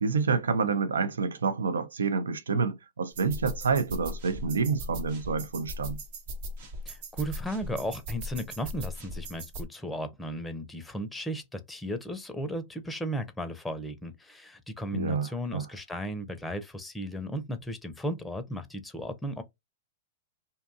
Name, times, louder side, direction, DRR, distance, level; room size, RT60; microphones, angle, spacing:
voice 1, 0.0-6.0 14.9-15.7, right 5 dB, 80° right, 0.4 m, -28 dB
sound 1, 3.2-9.7, equal, 55° right, 0.7 m, -39 dB
voice 2, 6.9-19.4, equal, 5° left, 0.5 m, -35 dB
2.6 x 2.2 x 2.6 m
hypercardioid pair, 105°, 0 cm